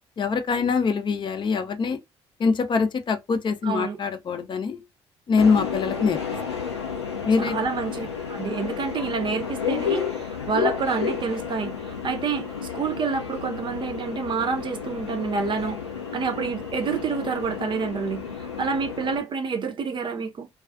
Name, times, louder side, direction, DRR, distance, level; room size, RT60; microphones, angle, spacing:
voice 1, 0.2-2.0 2.4-4.8 5.3-6.2 7.2-7.6, left 5 dB, 35° left, 0.5 m, -23 dB
voice 2, 3.6-4.0 7.4-12.5 12.7-15.8 16.1-20.5, right 5 dB, 35° right, 0.6 m, -28 dB
Subway metro underground, 5.4-19.2, left 7 dB, 90° left, 0.5 m, -31 dB
2.3 x 2.3 x 2.3 m
figure-of-eight pair, 45°, 14 cm